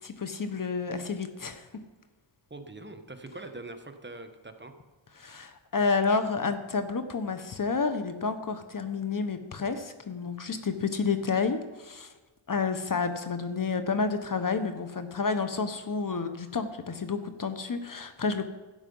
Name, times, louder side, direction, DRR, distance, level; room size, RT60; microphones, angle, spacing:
voice 1, 0.0-1.7 5.2-12.1 12.5-18.5, left 4 dB, 40° left, 9 dB, 1.1 m, -30 dB
voice 2, 2.5-4.7, right 2 dB, 25° right, 6 dB, 1.3 m, -43 dB
12.5 x 9.1 x 5.5 m, 1.2 s
cardioid pair, 75°, 48 cm